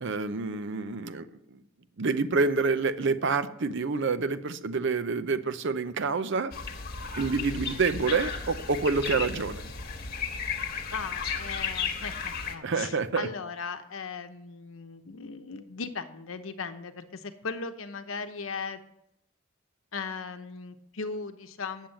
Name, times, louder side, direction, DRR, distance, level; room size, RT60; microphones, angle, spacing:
voice 1, 0.0-1.6 2.0-6.5 7.2-9.7 12.6-13.3, right 4 dB, 60° right, 12 dB, 0.6 m, -28 dB
sound 1, 6.5-12.6, left 5 dB, 50° left, 1.3 m, -34 dB
voice 2, 10.9-18.8 19.9-21.9, left 4 dB, 75° left, 9 dB, 0.9 m, -37 dB
8.8 x 7.3 x 7.6 m, 0.80 s
head